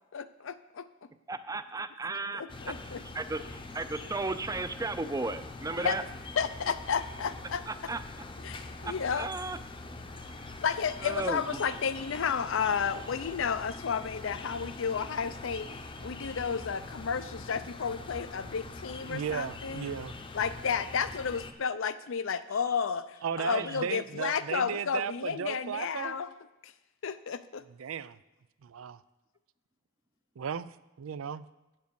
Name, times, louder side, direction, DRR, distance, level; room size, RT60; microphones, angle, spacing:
voice 1, 0.1-0.9 2.3-3.0 5.8-6.0 6.4-7.6 8.4-9.3 10.6-20.0 20.3-26.3 26.6-26.7 27.0-27.6, left 6 dB, 70° left, 13 dB, 0.5 m, -32 dB
voice 2, 1.3-2.4 2.9-3.4 3.7-6.0 7.7-8.0 8.8-9.6 11.0-11.6 23.6-23.8, right 3 dB, 15° right, 12 dB, 0.5 m, -35 dB
sound 1, 2.5-21.5, left 3 dB, 25° left, 0.7 m, -44 dB
voice 3, 19.1-20.1 23.2-26.2 27.8-28.2 28.6-29.0 30.4-31.5, right 7 dB, 90° right, 17 dB, 0.4 m, -35 dB
9.2 x 7.5 x 6.9 m, 1.0 s
head